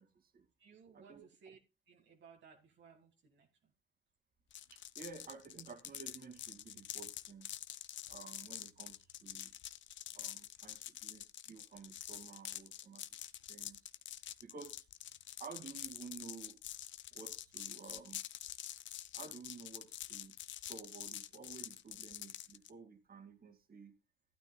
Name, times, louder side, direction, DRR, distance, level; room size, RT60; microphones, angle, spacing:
voice 1, 0.0-0.5 0.9-1.3 4.7-7.5 8.1-9.5 10.1-13.0 13.5-13.8 14.4-14.9 15.4-16.6 17.1-18.2 19.1-23.9, right 5 dB, 50° right, 2.3 m, -53 dB
voice 2, 0.6-1.6 1.9-3.7, right 6 dB, 65° right, 1.8 m, -60 dB
sound 1, 4.5-22.7, left 12 dB, 70° left, 0.7 m, -47 dB
15.0 x 9.5 x 2.3 m
cardioid pair, 90°, 20 cm